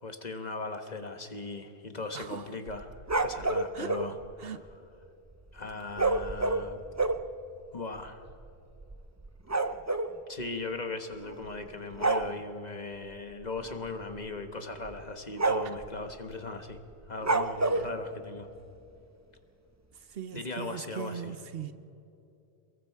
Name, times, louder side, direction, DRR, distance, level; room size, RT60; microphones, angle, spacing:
voice 1, 0.0-4.6 5.5-6.8 7.7-8.2 10.3-16.8 17.0-18.5 20.3-21.3, left 3 dB, 40° left, 7 dB, 1.4 m, -38 dB
voice 2, 2.1-2.5 3.7-4.0 4.4-4.6 17.7-17.9 20.1-21.7, right 7 dB, 65° right, 11 dB, 1.0 m, -39 dB
sound 1, 2.7-4.1 6.0-7.3 8.0-8.1 8.3-8.5 8.8-10.1 11.2-11.6 11.9-12.3 13.6-13.9 14.2-14.3 14.8-15.0 15.4-15.9 17.2-17.9, right 3 dB, 20° right, 0.5 m, -28 dB
28.5 x 22.0 x 4.7 m, 2.7 s
omnidirectional pair, 1.1 m